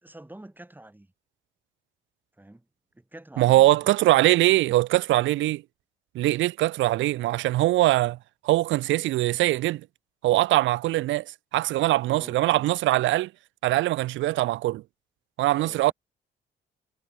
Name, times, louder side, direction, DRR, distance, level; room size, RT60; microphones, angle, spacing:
voice 1, 0.0-1.1 2.4-2.6 3.0-3.9 12.0-12.7 15.6-15.9, right 1 dB, 10° right, 5.2 m, -47 dB
voice 2, 3.4-5.6 6.1-8.2 8.4-9.8 10.2-13.3 13.6-14.8 15.4-15.9, right 16 dB, 75° right, 0.4 m, -22 dB
cardioid pair, 90°, 20 cm